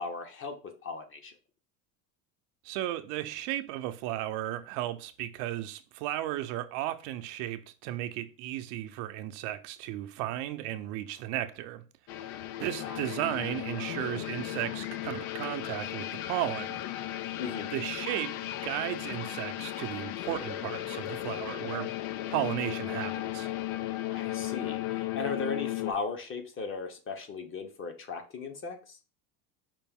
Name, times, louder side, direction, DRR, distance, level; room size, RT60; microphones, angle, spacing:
voice 1, 0.0-1.3 12.8-13.1 17.4-17.7 24.1-29.0, left 4 dB, 30° left, 0.7 m, -37 dB
voice 2, 2.6-11.8 12.6-16.8 17.7-21.9 22.3-23.5, right 13 dB, 75° right, 0.6 m, -35 dB
sound 1, 12.1-25.9, left 14 dB, 90° left, 0.6 m, -36 dB
5.1 x 2.6 x 3.5 m
cardioid pair, 150°, 43 cm